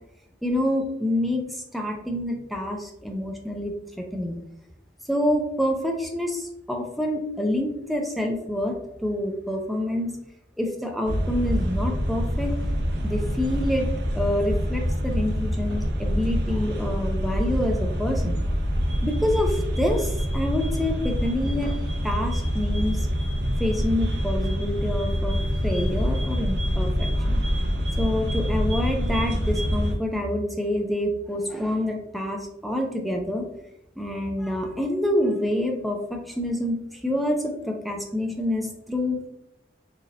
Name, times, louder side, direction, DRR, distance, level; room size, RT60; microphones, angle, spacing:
voice 1, 0.4-4.4 5.1-10.1 10.6-12.5 13.0-13.9 14.2-18.3 19.0-21.7 22.0-23.1 23.6-25.4 25.6-27.4 28.0-33.5 34.0-39.2, left 1 dB, ahead, 1 dB, 0.4 m, -27 dB
sound 1, 11.1-29.9, equal, 65° right, 0.5 m, -26 dB
3.2 x 2.6 x 2.7 m, 0.81 s
head